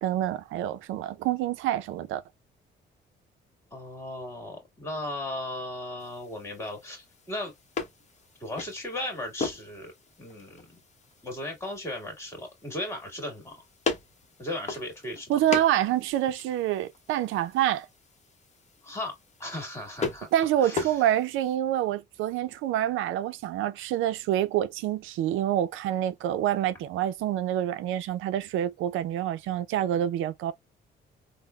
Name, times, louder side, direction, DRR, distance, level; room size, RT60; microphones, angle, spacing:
voice 1, 0.0-2.2 15.3-17.9 20.3-30.5, right 12 dB, 85° right, 0.4 m, -27 dB
voice 2, 3.7-7.5 8.4-9.9 10.2-10.8 11.2-13.6 14.4-15.3 18.8-20.3 20.6-21.0, left 1 dB, 15° left, 1.7 m, -36 dB
sound 1, 6.0-21.6, left 4 dB, 35° left, 0.8 m, -39 dB
3.6 x 2.0 x 2.3 m
cardioid pair, 90°, 20 cm